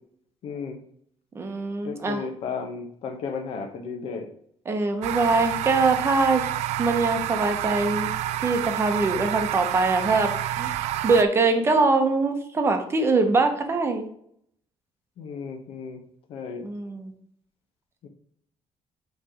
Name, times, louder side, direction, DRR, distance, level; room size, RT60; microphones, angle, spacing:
voice 1, 0.4-0.8 1.8-4.3 15.2-16.0 16.3-16.6 18.0-18.1, left 5 dB, 60° left, 6 dB, 1.1 m, -34 dB
voice 2, 1.3-2.2 4.7-6.5 6.8-8.1 8.4-14.1 16.6-17.1, right 3 dB, 20° right, 6 dB, 0.9 m, -23 dB
sound 1, 5.0-11.2, right 12 dB, 85° right, 0.4 m, -29 dB
8.4 x 3.4 x 5.0 m, 0.66 s
cardioid pair, 170°, 11 cm